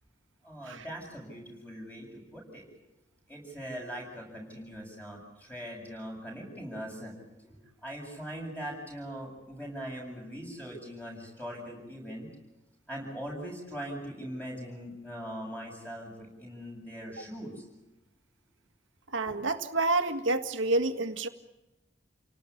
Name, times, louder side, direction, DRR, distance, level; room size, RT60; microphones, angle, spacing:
voice 1, 0.4-2.6 3.3-7.1 7.4-12.3 12.9-17.7 19.3-19.4, equal, 10° left, 0 dB, 7.8 m, -41 dB
voice 2, 19.1-21.3, right 2 dB, 90° right, 8 dB, 2.0 m, -28 dB
29.0 x 18.5 x 8.6 m, 0.99 s
head